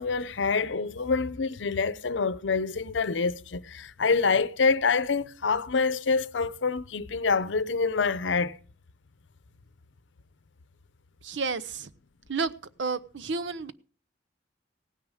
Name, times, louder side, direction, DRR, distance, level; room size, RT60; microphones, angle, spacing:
voice 1, 0.0-8.5, left 4 dB, 85° left, 0.7 m, -26 dB
voice 2, 11.2-11.9 12.3-12.5 12.8-13.7, right 4 dB, 85° right, 0.8 m, -31 dB
17.0 x 9.6 x 5.0 m
head